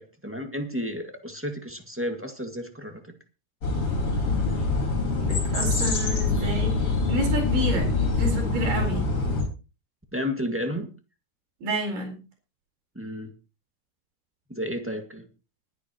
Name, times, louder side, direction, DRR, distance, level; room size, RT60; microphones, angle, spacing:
voice 1, 0.0-3.0 10.1-10.9 12.9-13.3 14.5-15.3, equal, 5° right, 3 dB, 1.0 m, -32 dB
sound 1, 3.6-9.4, left 3 dB, 35° left, 5.3 m, -25 dB
voice 2, 5.2-9.1 11.6-12.2, right 1 dB, 85° right, 0 dB, 6.0 m, -30 dB
21.5 x 10.5 x 3.0 m, 0.32 s
omnidirectional pair, 3.7 m